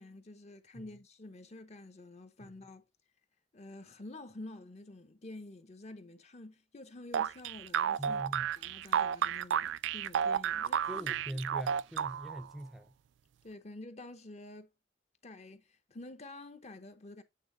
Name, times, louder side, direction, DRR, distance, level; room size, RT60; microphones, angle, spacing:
voice 1, 0.0-2.9 3.5-8.2 8.6-11.1 13.4-14.7 15.2-17.2, left 2 dB, 35° left, 0.8 m, -49 dB
sound 1, 7.1-12.5, right 8 dB, 70° right, 0.3 m, -32 dB
voice 2, 8.0-8.5 10.9-12.9, equal, ahead, 0.4 m, -42 dB
8.5 x 3.4 x 3.8 m
head